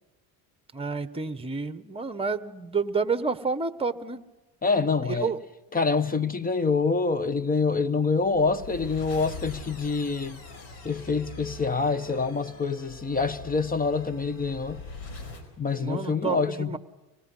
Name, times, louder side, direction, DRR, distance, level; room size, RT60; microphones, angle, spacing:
voice 1, 0.7-4.2 5.1-5.4 15.8-16.8, right 4 dB, 15° right, 1.3 m, -29 dB
voice 2, 4.6-5.3 5.7-10.4 10.8-14.8 15.6-16.8, left 4 dB, 20° left, 1.2 m, -26 dB
sound 1, 8.1-15.5, left 3 dB, 85° left, 4.8 m, -42 dB
25.0 x 20.0 x 5.7 m
supercardioid pair, 95°, 40 cm